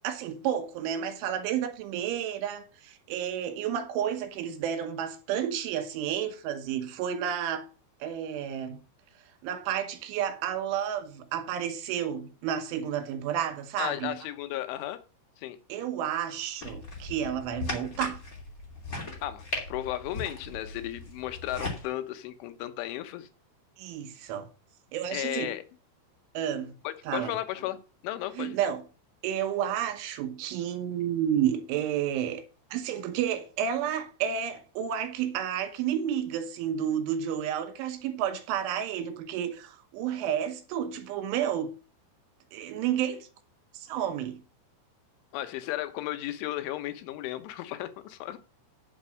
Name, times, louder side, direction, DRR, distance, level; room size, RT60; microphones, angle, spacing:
voice 1, 0.0-7.7 8.0-8.8 9.4-14.2 15.7-18.2 23.8-24.5 24.9-25.5 26.4-26.8 27.1-27.3 28.4-28.8 29.2-32.4 32.7-41.7 42.5-43.3 43.7-44.4, right 9 dB, 80° right, 3.7 m, -31 dB
voice 2, 13.8-15.0 15.4-15.6 19.2-23.3 25.1-25.6 26.8-27.8 28.0-28.6 45.3-48.4, left 14 dB, 80° left, 3.4 m, -34 dB
sound 1, 16.6-21.8, left 3 dB, 25° left, 2.2 m, -38 dB
9.9 x 6.0 x 6.4 m
omnidirectional pair, 5.6 m